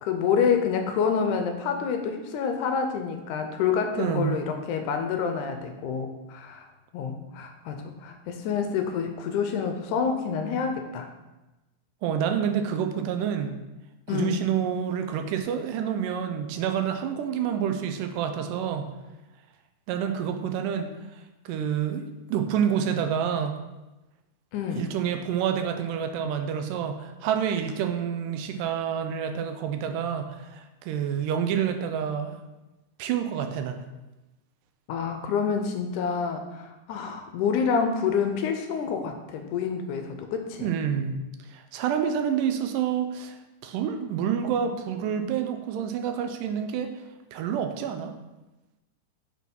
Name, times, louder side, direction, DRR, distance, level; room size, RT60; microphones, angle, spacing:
voice 1, 0.0-6.7 6.9-11.1 14.1-14.4 24.5-24.9 34.9-40.7, left 6 dB, 80° left, 5 dB, 1.9 m, -27 dB
voice 2, 4.0-4.4 12.0-13.6 14.1-18.9 19.9-20.9 21.5-23.6 24.8-32.4 33.0-33.8 40.6-41.1 41.5-43.4 43.6-46.9 47.3-48.1, right 8 dB, 85° right, 7 dB, 2.2 m, -28 dB
6.0 x 4.6 x 5.3 m, 1.0 s
omnidirectional pair, 3.8 m